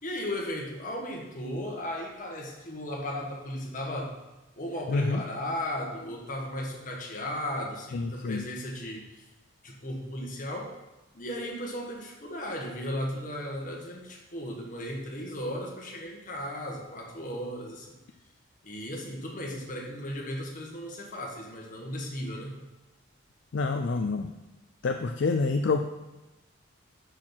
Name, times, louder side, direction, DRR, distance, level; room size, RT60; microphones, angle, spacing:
voice 1, 0.0-4.2 4.6-9.3 9.6-10.8 11.1-18.0 18.6-22.6, left 1 dB, 40° left, -1 dB, 1.5 m, -36 dB
voice 2, 4.9-5.2 7.9-8.4 23.5-24.3 24.8-25.8, left 3 dB, 60° left, 5 dB, 0.4 m, -27 dB
6.4 x 6.3 x 5.9 m, 1.1 s
head